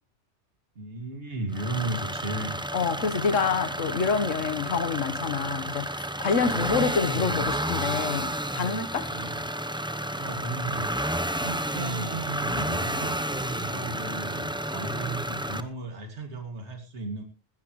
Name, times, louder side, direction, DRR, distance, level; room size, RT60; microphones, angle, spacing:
voice 1, 0.8-2.6 6.7-7.4 9.1-9.4 10.2-17.2, right 2 dB, 65° right, 2.7 m, -35 dB
sound 1, 1.5-15.6, right 1 dB, 5° right, 0.6 m, -31 dB
voice 2, 2.7-9.1, left 5 dB, 85° left, 1.6 m, -27 dB
19.5 x 14.0 x 3.1 m
omnidirectional pair, 1.3 m